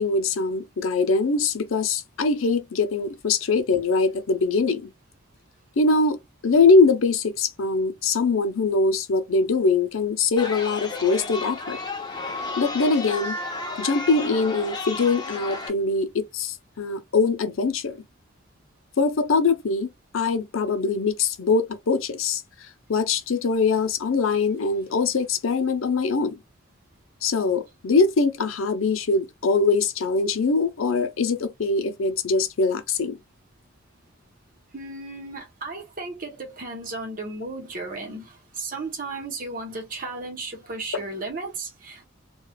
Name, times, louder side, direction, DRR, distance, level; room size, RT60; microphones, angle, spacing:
voice 1, 0.0-4.9 5.8-11.8 12.6-13.4 13.8-18.0 19.0-19.9 20.1-22.4 22.9-26.4 27.2-33.2, left 4 dB, 85° left, 0.5 m, -22 dB
Chatter, 10.4-15.7, left 3 dB, 20° left, 0.6 m, -32 dB
voice 2, 34.7-42.0, right 3 dB, 45° right, 0.9 m, -34 dB
3.1 x 2.3 x 2.3 m
head